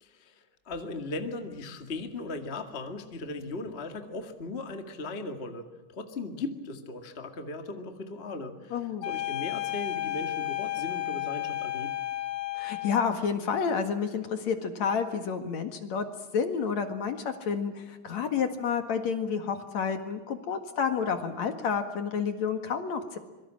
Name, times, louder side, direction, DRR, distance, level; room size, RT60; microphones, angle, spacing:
voice 1, 0.0-11.9, left 3 dB, 25° left, 6 dB, 1.6 m, -38 dB
voice 2, 8.7-9.1 12.5-16.1 16.3-23.2, left 6 dB, 55° left, 7 dB, 2.8 m, -30 dB
sound 1, 9.0-13.2, left 13 dB, 70° left, 3.2 m, -33 dB
26.0 x 23.5 x 7.6 m, 1.2 s
omnidirectional pair, 4.1 m